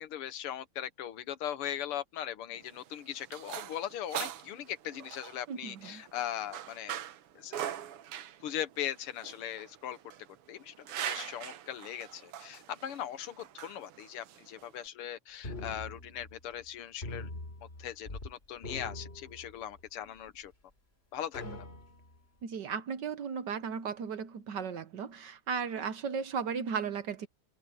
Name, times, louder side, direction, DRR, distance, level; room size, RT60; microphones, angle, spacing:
voice 1, 0.0-7.0 7.4-7.7 8.4-10.0 10.5-17.3 17.8-20.5 21.1-21.4, left 10 dB, 85° left, 2.0 m, -39 dB
sound 1, 2.6-14.9, right 10 dB, 85° right, 2.0 m, -42 dB
voice 2, 5.5-6.0 21.4-21.5 22.4-27.3, right 6 dB, 60° right, 1.5 m, -36 dB
sound 2, 15.4-16.7 17.0-18.3 18.6-19.9 20.5-20.6 21.3-22.2, left 2 dB, 25° left, 3.5 m, -43 dB
omnidirectional pair, 2.4 m